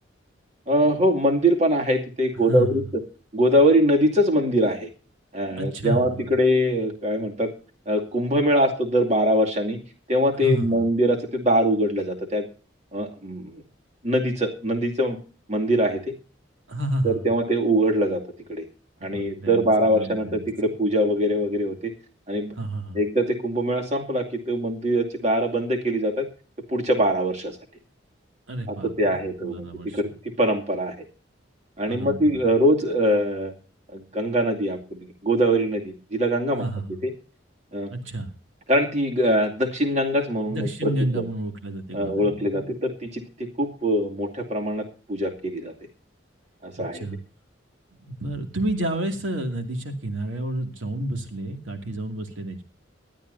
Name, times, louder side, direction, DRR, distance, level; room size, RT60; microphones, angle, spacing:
voice 1, 0.7-2.8 3.3-4.9 5.3-7.5 7.9-9.8 10.1-12.4 12.9-13.6 14.0-15.2 15.5-16.0 17.0-18.2 18.5-18.6 19.0-21.9 22.3-22.5 22.9-26.3 26.7-27.6 28.7-30.1 30.4-30.9 31.8-33.5 33.9-36.7 37.0-37.1 37.7-37.9 38.7-41.2 41.9-43.2 43.6-45.7 46.6-47.0, equal, 35° right, 3 dB, 2.4 m, -23 dB
voice 2, 5.6-6.2 10.4-10.8 16.7-17.2 19.0-20.6 22.6-23.0 28.5-30.0 31.9-32.4 36.6-37.0 37.9-38.3 40.5-42.7 46.8-47.2 48.0-52.6, right 1 dB, 85° right, 5 dB, 2.4 m, -30 dB
19.5 x 12.0 x 2.7 m, 0.35 s
head